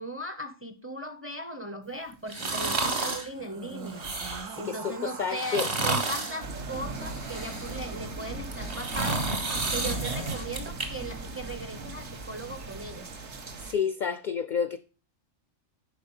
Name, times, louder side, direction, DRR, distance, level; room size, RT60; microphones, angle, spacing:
voice 1, 0.0-4.1 4.6-13.1, right 1 dB, 15° right, 0.7 m, -38 dB
sound 1, 2.3-3.3 3.9-4.6 5.3-6.4 7.0-7.9 8.4-10.9 11.3-11.4, right 3 dB, 50° right, 1.9 m, -31 dB
sound 2, 3.3-8.5, right 6 dB, 85° right, 1.3 m, -44 dB
voice 2, 4.6-5.7 13.6-14.8, left 6 dB, 60° left, 0.5 m, -29 dB
sound 3, 6.4-13.7, right 2 dB, 65° right, 1.4 m, -38 dB
10.5 x 4.7 x 5.4 m
omnidirectional pair, 1.3 m